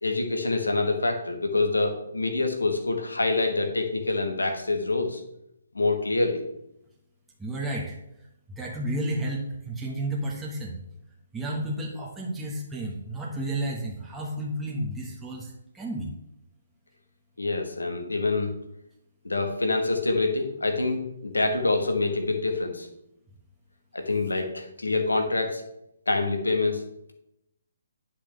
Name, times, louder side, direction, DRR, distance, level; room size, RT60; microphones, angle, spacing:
voice 1, 0.0-5.2 5.7-6.4 17.4-18.5 19.2-22.9 23.9-25.6 26.1-26.8, left 3 dB, 85° left, 5 dB, 1.5 m, -26 dB
voice 2, 7.4-8.0 8.5-10.8 11.3-16.1, right 1 dB, 5° right, -4 dB, 1.5 m, -32 dB
10.0 x 6.0 x 3.4 m, 0.82 s
figure-of-eight pair, 135°, 0 cm